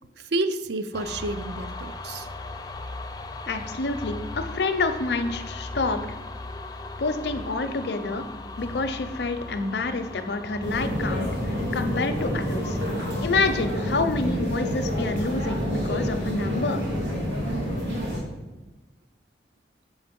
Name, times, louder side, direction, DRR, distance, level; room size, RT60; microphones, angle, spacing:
voice 1, 0.2-2.3 17.4-17.5, right 2 dB, 70° right, 11 dB, 0.5 m, -30 dB
sound 1, 0.9-13.7, left 2 dB, 20° left, 0.4 m, -37 dB
voice 2, 3.5-6.0 7.0-8.2 8.6-12.8 13.2-16.8, left 3 dB, 70° left, 8 dB, 0.6 m, -28 dB
sound 2, 10.6-18.2, equal, 90° right, 2.9 m, -28 dB
7.0 x 5.2 x 5.2 m, 1.1 s
head